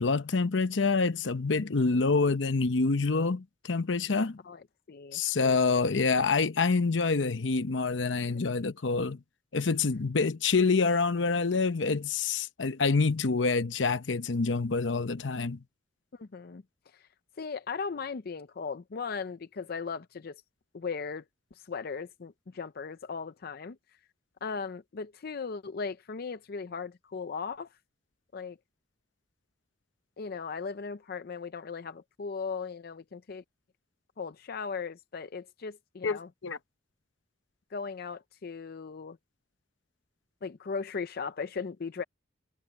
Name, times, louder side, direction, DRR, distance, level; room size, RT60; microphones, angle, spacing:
voice 1, 0.0-4.4 5.1-9.2 9.5-15.6 36.0-36.6, left 4 dB, 80° left, 0.8 m, -27 dB
voice 2, 4.4-5.8 8.3-8.4 16.1-16.6 16.9-17.1 17.4-20.4 20.7-21.2 21.5-23.8 24.4-27.7 28.3-28.6 30.2-33.4 34.2-36.3 37.7-39.2 40.4-42.0, left 5 dB, 55° left, 0.5 m, -38 dB
head